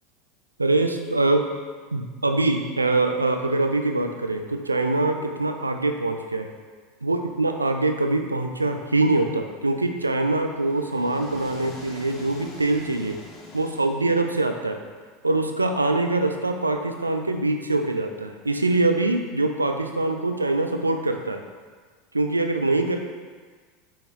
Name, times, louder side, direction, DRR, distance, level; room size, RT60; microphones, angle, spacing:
voice 1, 0.6-1.5 1.9-6.5 7.0-13.2 13.5-14.8 15.2-21.4 22.1-23.0, right 2 dB, 90° right, 5 dB, 0.3 m, -23 dB
sound 1, 10.0-14.4, left 3 dB, 30° left, 0.8 m, -44 dB
5.4 x 3.0 x 3.1 m, 1.5 s
figure-of-eight pair, 80°, 0 cm